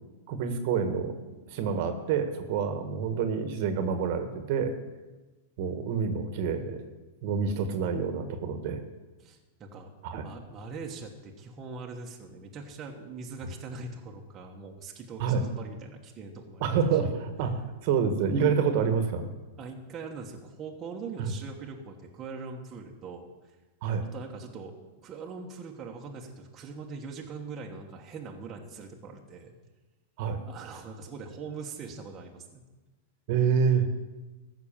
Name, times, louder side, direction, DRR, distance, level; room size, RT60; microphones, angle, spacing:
voice 1, 0.3-1.2 1.5-4.7 5.6-6.8 7.2-8.8 10.0-10.2 15.2-15.4 16.6-19.3 21.2-21.3 23.8-24.0 30.2-30.4 33.3-33.9, right 6 dB, 50° right, 7 dB, 1.4 m, -27 dB
voice 2, 9.2-17.2 19.6-23.5 24.1-24.7 25.0-29.5 30.5-32.6, right 4 dB, 25° right, 0 dB, 1.3 m, -42 dB
14.5 x 6.0 x 7.3 m, 1.2 s
supercardioid pair, 145°, 0 cm